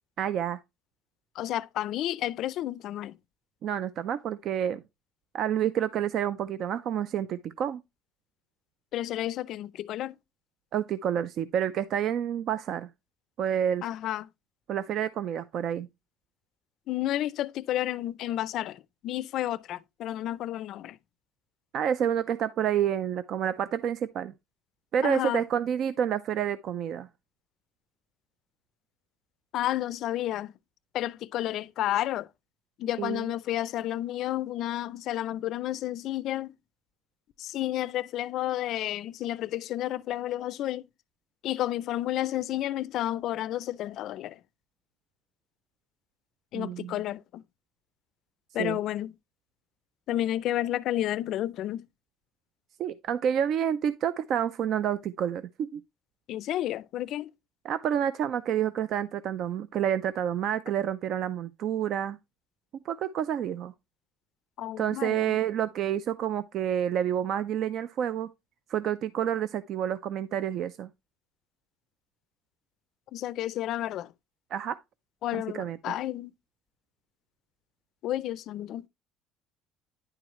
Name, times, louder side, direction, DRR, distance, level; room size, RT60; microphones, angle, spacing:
voice 1, 0.2-0.6 3.6-4.8 5.3-7.8 10.7-12.9 13.4-13.8 14.7-15.9 21.7-24.3 24.9-27.1 33.0-33.3 46.5-46.9 48.6-48.8 52.8-55.8 57.6-62.2 62.8-63.7 64.8-68.3 68.7-70.9 74.5-74.8 75.5-75.9, right 9 dB, 55° right, 0.4 m, -29 dB
voice 2, 1.4-3.2 8.9-10.2 13.8-14.3 16.9-21.0 25.0-25.4 29.5-30.5 30.9-32.3 32.8-36.6 37.4-40.9 41.4-44.4 46.5-47.4 48.5-49.1 50.1-51.9 56.3-57.3 64.6-65.4 73.1-74.1 75.2-76.3 78.0-78.9, left 13 dB, 60° left, 0.4 m, -31 dB
9.8 x 4.7 x 3.0 m
cardioid pair, 115°, 0 cm